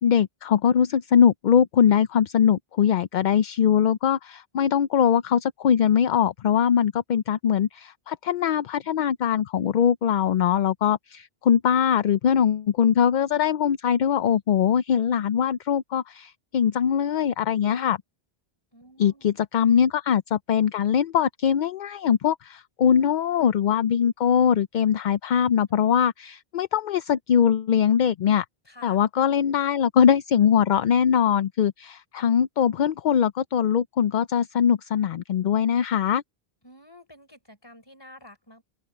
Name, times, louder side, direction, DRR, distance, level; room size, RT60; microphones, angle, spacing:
voice 1, 0.0-18.0 19.0-28.4 28.8-36.2, left 8 dB, 60° left, 0.6 m, -22 dB
voice 2, 18.7-19.3 25.7-25.8 28.6-29.0 36.6-38.6, left 1 dB, 25° left, 4.4 m, -49 dB
open air
omnidirectional pair, 1.0 m